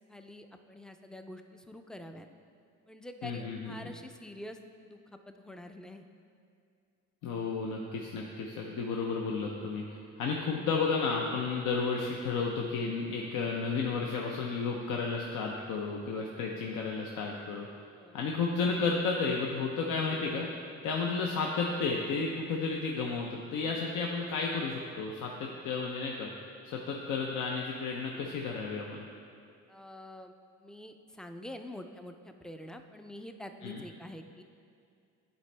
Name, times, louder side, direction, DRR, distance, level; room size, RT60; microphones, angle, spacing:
voice 1, 0.1-2.3 2.9-4.6 4.9-6.0 13.2-13.3 16.6-16.8 18.0-18.2 23.9-24.3 29.7-30.3 30.6-34.4, left 1 dB, ahead, 7 dB, 0.3 m, -46 dB
voice 2, 3.2-3.9 7.2-17.7 18.1-20.5 20.8-26.3 26.7-29.0 33.6-33.8, left 4 dB, 85° left, -1 dB, 0.6 m, -32 dB
10.5 x 4.2 x 3.3 m, 2.4 s
cardioid pair, 90°, 30 cm